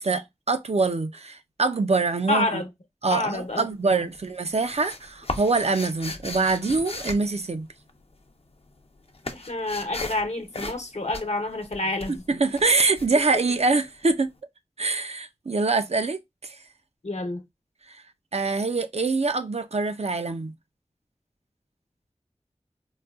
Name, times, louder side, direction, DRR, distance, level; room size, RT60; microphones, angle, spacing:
voice 1, 0.0-2.6 3.0-7.7 12.1-14.3 14.8-16.6 17.9-18.0 18.3-20.5, right 3 dB, 65° right, 0.5 m, -24 dB
voice 2, 2.3-2.7 3.1-4.1 9.3-12.2 17.0-17.4, left 2 dB, 75° left, 0.9 m, -28 dB
sound 1, 3.3-3.8 4.1-8.2 8.5-14.0, left 3 dB, 55° left, 0.6 m, -37 dB
4.0 x 2.2 x 2.3 m
wide cardioid pair, 40°, 12 cm